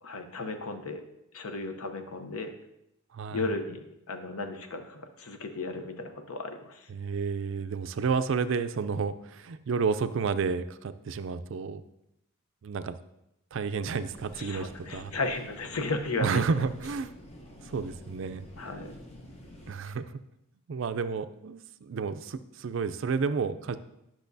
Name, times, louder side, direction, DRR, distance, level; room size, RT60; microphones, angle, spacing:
voice 1, 0.0-1.0 1.3-2.5 3.3-6.9 14.4-16.4 18.6-18.9, left 3 dB, 80° left, 7 dB, 0.8 m, -35 dB
voice 2, 3.1-3.4 6.9-11.8 12.6-13.0 13.5-15.1 16.2-17.1 17.6-18.5 19.7-20.2 20.7-23.8, right 5 dB, 60° right, 12 dB, 0.4 m, -31 dB
sound 1, 14.1-19.7, left 1 dB, 25° left, 0.8 m, -48 dB
10.5 x 6.1 x 2.7 m, 0.83 s
head